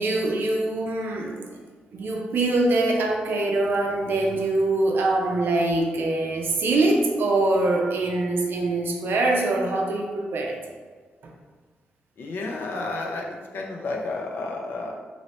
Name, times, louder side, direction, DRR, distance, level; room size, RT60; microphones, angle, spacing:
voice 1, 0.0-1.5 1.9-10.6, right 2 dB, 70° right, 0 dB, 0.6 m, -23 dB
voice 2, 12.2-14.9, left 2 dB, 70° left, 0 dB, 0.5 m, -31 dB
2.9 x 2.6 x 3.1 m, 1.5 s
cardioid pair, 60°, 4 cm